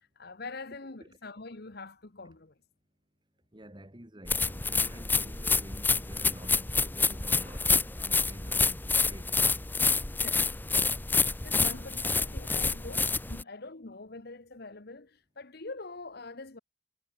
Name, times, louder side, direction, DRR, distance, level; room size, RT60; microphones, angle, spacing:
voice 1, 0.2-2.5 10.2-11.0 11.4-16.6, left 3 dB, 50° left, 1.2 m, -44 dB
voice 2, 3.5-9.3, right 1 dB, 20° right, 2.1 m, -49 dB
sound 1, 4.3-13.4, left 4 dB, 10° left, 0.5 m, -28 dB
head